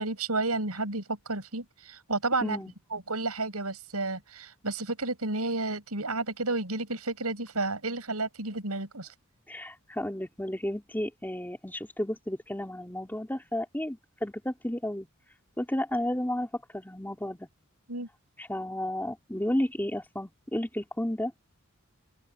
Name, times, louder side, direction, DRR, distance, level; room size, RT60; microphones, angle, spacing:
voice 1, 0.0-2.6 2.9-9.1 17.9-18.1, right 2 dB, 85° right, 7.2 m, -31 dB
voice 2, 2.4-2.7 9.5-15.1 15.6-16.5 16.7-17.5 18.5-21.3, left 1 dB, 10° left, 2.7 m, -32 dB
open air
head